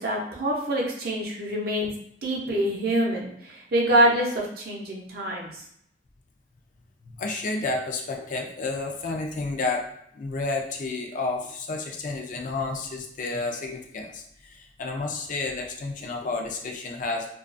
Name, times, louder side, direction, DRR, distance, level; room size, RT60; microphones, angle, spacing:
voice 1, 0.0-1.9 2.2-5.6, right 1 dB, 55° right, -2 dB, 0.6 m, -25 dB
voice 2, 7.0-9.9 10.1-17.3, left 3 dB, 45° left, 2 dB, 0.4 m, -31 dB
2.3 x 2.3 x 2.4 m, 0.73 s
head